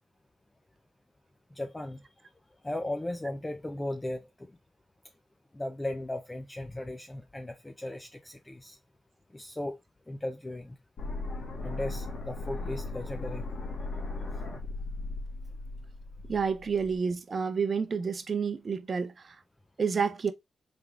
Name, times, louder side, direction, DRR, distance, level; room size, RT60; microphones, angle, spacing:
voice 1, 1.5-2.0 2.6-4.5 5.5-8.8 9.3-9.8 10.1-10.7 11.6-13.4, left 1 dB, 20° left, 0.6 m, -36 dB
sound 1, 11.0-17.0, left 2 dB, 70° left, 1.8 m, -37 dB
voice 2, 16.3-19.4 19.8-20.3, right 5 dB, 50° right, 0.7 m, -29 dB
3.6 x 3.5 x 3.4 m
supercardioid pair, 50°, 0 cm